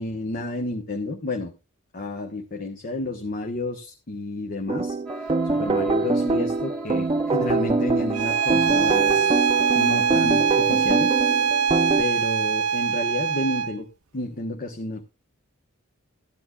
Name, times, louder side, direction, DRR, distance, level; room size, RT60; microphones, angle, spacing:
voice 1, 0.0-1.5 1.9-9.3 9.7-11.1 12.0-13.9 14.1-15.0, left 2 dB, 40° left, 3 dB, 1.1 m, -31 dB
sound 1, 4.7-12.0, right 3 dB, 25° right, 0.5 m, -24 dB
sound 2, 5.1-10.7, right 2 dB, 5° left, 1.2 m, -39 dB
Bowed string instrument, 8.1-13.7, right 7 dB, 75° right, 0.6 m, -23 dB
15.5 x 10.5 x 2.3 m, 0.27 s
head